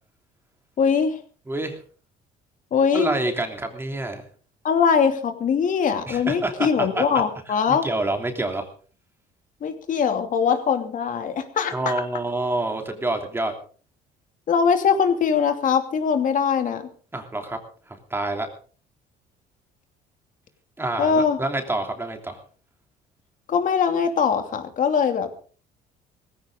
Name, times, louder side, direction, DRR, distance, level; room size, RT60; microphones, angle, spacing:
voice 1, 0.8-1.2 2.7-3.1 4.6-7.8 9.6-11.9 14.5-16.8 21.0-21.4 23.5-25.3, left 6 dB, 50° left, 7 dB, 2.7 m, -21 dB
voice 2, 1.5-1.8 2.9-4.2 6.1-7.0 7.7-8.7 11.7-13.5 17.1-17.6 17.9-18.5 20.8-22.4, right 2 dB, 15° right, 4 dB, 3.1 m, -27 dB
18.5 x 16.0 x 3.9 m, 0.42 s
cardioid pair, 110°, 17 cm